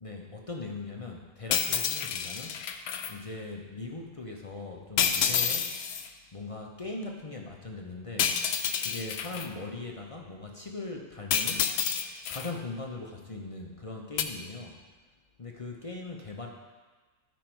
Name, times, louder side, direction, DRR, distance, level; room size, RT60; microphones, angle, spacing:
voice 1, 0.0-2.6 3.1-5.9 6.3-8.3 8.8-11.7 12.3-14.8 15.4-16.5, left 3 dB, 40° left, 0 dB, 0.5 m, -40 dB
sound 1, 1.5-3.1 5.0-6.1 8.2-9.5 11.3-12.5 14.2-14.3, left 8 dB, 75° left, 1.1 m, -29 dB
12.0 x 5.2 x 4.5 m, 1.3 s
omnidirectional pair, 1.6 m